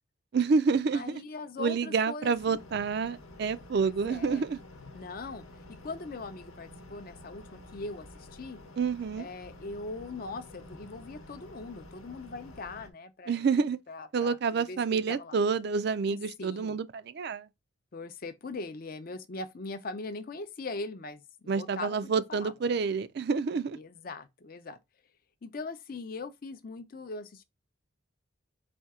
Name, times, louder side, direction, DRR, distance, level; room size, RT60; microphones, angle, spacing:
voice 1, 0.3-1.2 1.6-4.6 8.8-9.3 13.3-13.8 14.1-17.5 21.5-23.8, right 5 dB, 50° right, 0.4 m, -28 dB
voice 2, 0.9-2.6 3.8-4.4 4.9-5.4 5.8-8.6 9.2-14.4 14.7-15.4 16.1-16.8 17.9-22.5 23.7-24.8 25.4-27.4, left 3 dB, 45° left, 0.5 m, -41 dB
sound 1, 2.4-12.9, left 1 dB, 90° left, 0.9 m, -50 dB
4.3 x 2.7 x 3.5 m
head